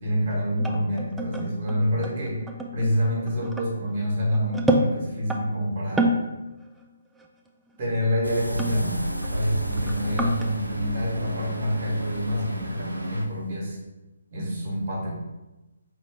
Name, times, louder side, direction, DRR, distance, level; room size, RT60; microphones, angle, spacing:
voice 1, 0.0-2.4 2.7-6.1 7.8-13.8 14.3-15.1, equal, 40° right, -4 dB, 1.4 m, -27 dB
sound 1, 0.6-5.4 5.8-6.3 6.6-6.9 7.2-7.3 8.3-9.5 9.7-10.5, right 1 dB, 5° right, 0.3 m, -28 dB
sound 2, 8.2-13.6, equal, 90° left, 0.3 m, -34 dB
Traffic noise roadway noise, 8.2-13.3, right 1 dB, 70° right, 0.7 m, -36 dB
3.7 x 2.6 x 4.7 m, 1.0 s
figure-of-eight pair, 140°, 0 cm